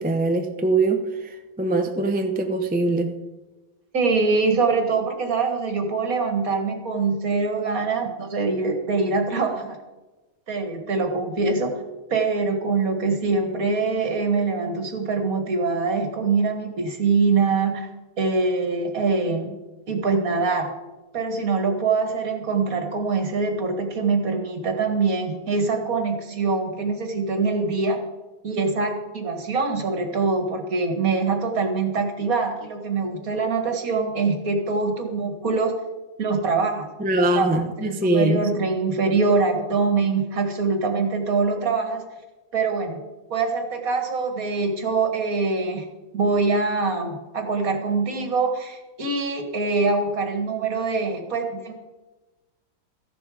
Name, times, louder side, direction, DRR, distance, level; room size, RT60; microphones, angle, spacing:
voice 1, 0.0-3.1 37.0-38.5, right 2 dB, 10° right, 5 dB, 0.4 m, -22 dB
voice 2, 3.9-9.8 10.5-11.7 12.1-17.9 18.2-19.6 19.9-20.7 21.1-28.0 28.4-35.7 36.2-36.9 37.3-42.0 42.5-43.0 43.3-45.9 46.1-51.7, right 4 dB, 50° right, 5 dB, 2.0 m, -24 dB
14.5 x 11.0 x 4.9 m, 1.1 s
omnidirectional pair, 2.0 m